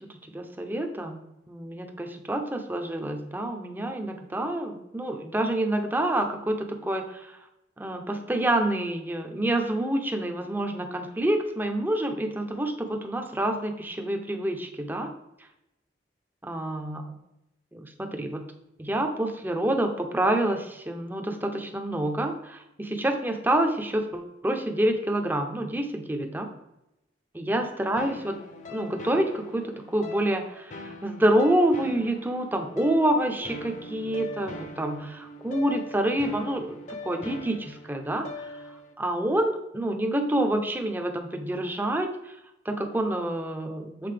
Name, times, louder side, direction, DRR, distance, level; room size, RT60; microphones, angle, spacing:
voice 1, 0.3-1.2 1.5-7.4 7.8-15.1 16.5-17.2 17.7-18.4 18.8-26.5 27.3-28.4 28.7-36.8 37.0-42.4 42.6-44.1, right 1 dB, 10° right, 4 dB, 0.6 m, -27 dB
sound 1, 28.0-38.9, left 2 dB, 40° left, 0.7 m, -42 dB
7.6 x 4.0 x 3.3 m, 0.89 s
head